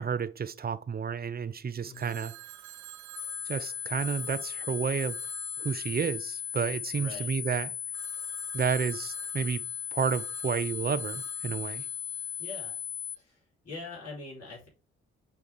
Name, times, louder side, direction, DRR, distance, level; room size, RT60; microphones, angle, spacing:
voice 1, 0.0-2.3 3.5-5.2 5.6-7.7 8.5-9.6 9.9-11.9, right 6 dB, 30° right, 0.7 m, -31 dB
voice 2, 1.8-2.2 7.0-7.3 12.4-12.8 13.2-14.7, left 3 dB, 55° left, 3.6 m, -43 dB
Telephone, 1.9-7.2 7.9-12.8, right 13 dB, 70° right, 1.0 m, -50 dB
sound 1, 3.2-13.2, left 9 dB, 30° left, 1.0 m, -37 dB
6.3 x 3.6 x 4.7 m
hypercardioid pair, 40°, 30 cm